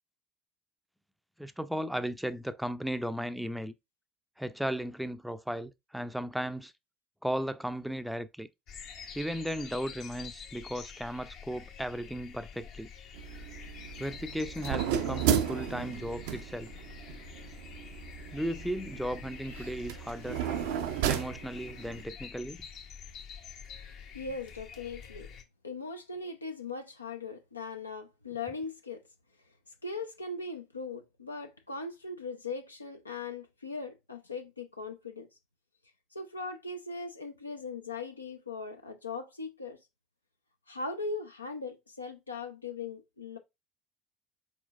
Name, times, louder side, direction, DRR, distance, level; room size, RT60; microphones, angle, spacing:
voice 1, 1.4-3.7 4.4-6.7 7.2-8.5 9.1-12.9 14.0-16.7 18.3-20.4 21.1-22.7, equal, ahead, 0.4 m, -35 dB
sound 1, 8.7-25.4, left 7 dB, 55° left, 0.8 m, -47 dB
sound 2, 13.1-22.0, right 9 dB, 70° right, 0.4 m, -34 dB
voice 2, 24.1-25.3 25.6-29.0 29.8-35.3 36.1-39.8 40.7-43.4, left 3 dB, 90° left, 0.5 m, -39 dB
4.4 x 4.2 x 2.4 m
figure-of-eight pair, 65°, 0 cm